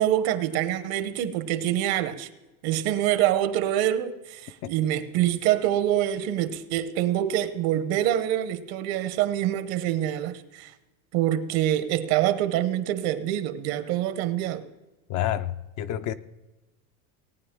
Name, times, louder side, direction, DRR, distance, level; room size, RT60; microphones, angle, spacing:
voice 1, 0.0-2.3 2.6-10.7 11.1-14.7, right 12 dB, 55° right, 1.1 m, -25 dB
voice 2, 15.1-16.1, left 11 dB, 45° left, 0.6 m, -29 dB
18.5 x 9.2 x 3.7 m
supercardioid pair, 120°, 43 cm